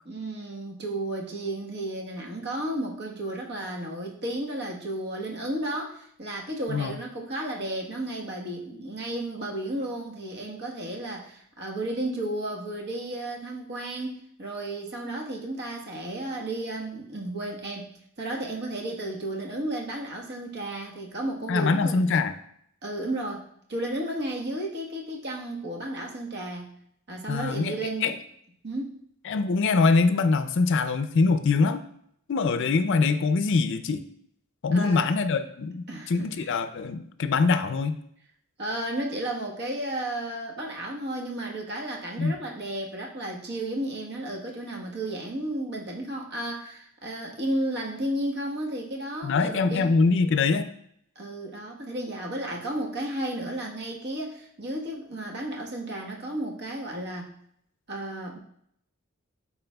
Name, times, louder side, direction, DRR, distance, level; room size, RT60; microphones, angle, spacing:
voice 1, 0.1-17.9 18.2-22.0 22.8-26.7 27.1-28.2 28.6-29.0 32.6-32.7 34.7-35.1 35.9-36.5 38.6-49.9 51.1-57.3 57.9-58.4, right 1 dB, 50° right, -1 dB, 1.3 m, -33 dB
voice 2, 21.5-22.3 27.3-27.8 28.0-28.1 29.3-31.8 32.3-34.0 34.6-38.0 42.2-42.3 49.2-50.7, left 4 dB, 60° left, 10 dB, 0.4 m, -23 dB
11.5 x 4.3 x 2.3 m, 0.69 s
head